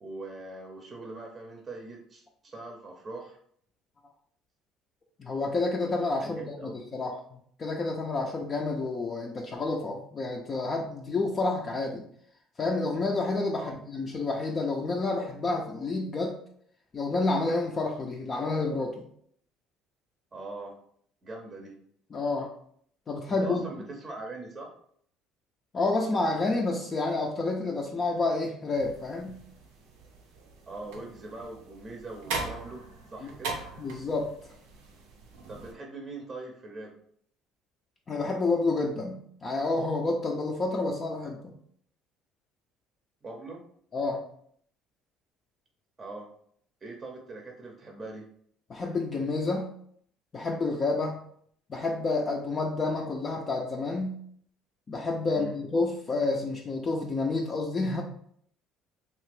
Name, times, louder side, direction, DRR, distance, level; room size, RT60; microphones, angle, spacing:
voice 1, 0.0-3.4 6.2-6.8 13.5-13.8 20.3-20.7 21.2-21.7 23.3-24.7 30.7-32.8 33.1-33.6 35.5-36.9 43.2-43.6 46.0-46.3 46.8-48.2 55.3-55.6, right 2 dB, 30° right, 1 dB, 0.6 m, -41 dB
voice 2, 5.2-7.2 7.6-12.0 12.6-16.4 16.9-19.0 22.1-22.5 23.1-23.6 25.7-29.4 33.2-33.3 33.8-34.3 38.1-41.5 43.9-44.2 48.7-49.7 50.3-51.2 51.7-54.2 54.9-58.0, left 3 dB, 35° left, 0 dB, 0.5 m, -29 dB
sound 1, 28.7-35.7, right 3 dB, 85° right, 0.6 m, -41 dB
2.8 x 2.4 x 3.4 m, 0.64 s
supercardioid pair, 90°, 0 cm